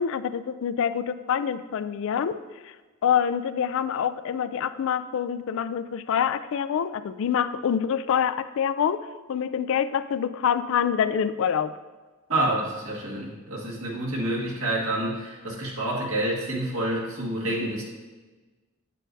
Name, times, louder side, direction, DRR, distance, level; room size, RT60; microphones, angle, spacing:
voice 1, 0.0-2.4 2.6-2.7 3.0-11.7, left 8 dB, 65° left, 13 dB, 0.3 m, -26 dB
voice 2, 12.3-17.8, right 1 dB, 75° right, -3 dB, 1.7 m, -28 dB
8.3 x 7.5 x 2.6 m, 1.3 s
head